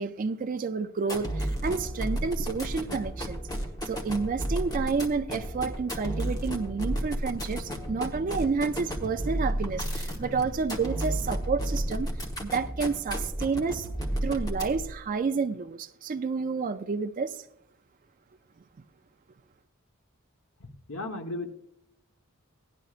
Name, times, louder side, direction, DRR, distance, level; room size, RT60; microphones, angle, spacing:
voice 1, 0.0-3.4 3.9-12.1 12.4-13.9 14.2-17.4, right 4 dB, 40° right, 0.4 m, -30 dB
sound 1, 1.0-15.0, equal, 20° left, 1.1 m, -32 dB
voice 2, 20.6-21.5, left 2 dB, 85° left, 1.2 m, -36 dB
17.5 x 10.5 x 2.5 m
head